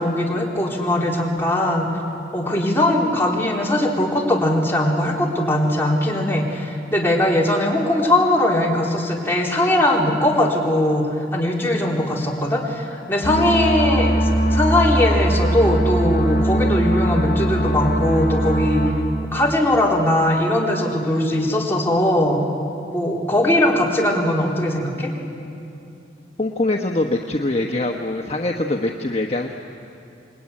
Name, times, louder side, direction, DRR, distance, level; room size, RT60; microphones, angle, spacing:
voice 1, 0.0-1.9 2.3-11.0 11.3-18.8 19.3-22.4 22.9-25.1, left 1 dB, 15° left, -3 dB, 3.9 m, -20 dB
sound 1, 13.2-18.9, right 1 dB, 50° left, 4.6 m, -20 dB
voice 2, 26.4-29.5, left 2 dB, 35° left, 2 dB, 1.1 m, -23 dB
28.0 x 22.0 x 9.7 m, 2.7 s
head